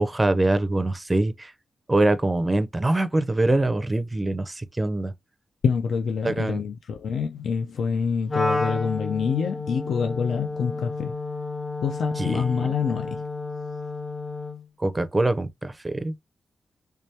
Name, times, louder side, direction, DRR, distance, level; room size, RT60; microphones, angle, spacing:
voice 1, 0.0-1.5 1.9-5.1 6.2-6.6 12.2-12.8 14.8-16.1, right 2 dB, 15° right, 0.4 m, -24 dB
voice 2, 5.6-11.1 11.8-13.2, left 6 dB, 85° left, 0.4 m, -26 dB
Wind instrument woodwind instrument, 8.3-14.7, left 3 dB, 30° left, 0.7 m, -31 dB
3.3 x 3.3 x 2.7 m
wide cardioid pair, 160°, 0 cm